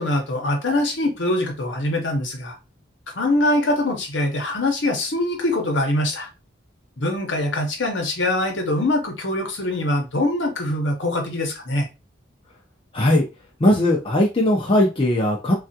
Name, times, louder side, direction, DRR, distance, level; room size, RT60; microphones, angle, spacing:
voice 1, 0.0-2.6 3.2-6.3 7.0-11.9, left 1 dB, 70° left, 3 dB, 0.9 m, -23 dB
voice 2, 13.6-15.5, left 1 dB, 25° left, -1 dB, 0.5 m, -18 dB
3.3 x 2.4 x 2.7 m, 0.28 s
head